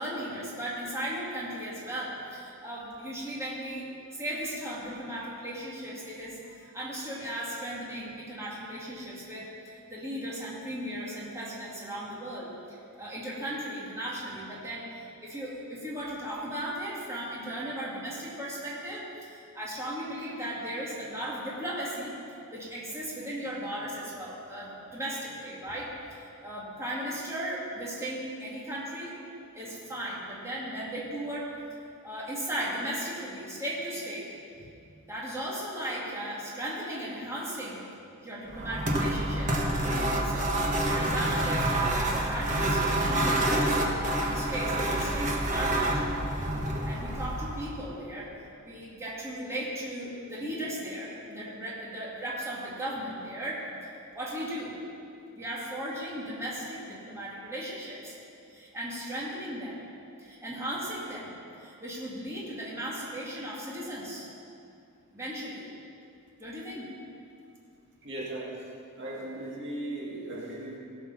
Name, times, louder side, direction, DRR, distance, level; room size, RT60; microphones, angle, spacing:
voice 1, 0.0-14.9 15.2-22.2 22.5-29.2 29.5-31.5 32.0-34.3 34.6-34.7 35.1-37.8 38.2-40.5 40.9-41.7 42.0-46.2 46.8-48.3 48.6-54.8 55.3-58.2 58.5-59.8 60.2-64.3 65.1-65.7 66.4-67.0, right 1 dB, 15° right, -6 dB, 2.2 m, -36 dB
sound 1, 38.5-47.9, right 1 dB, 35° right, 1.2 m, -28 dB
voice 2, 68.0-68.7 69.0-70.8, right 1 dB, 55° right, -4 dB, 2.1 m, -37 dB
17.0 x 6.6 x 5.9 m, 2.5 s
head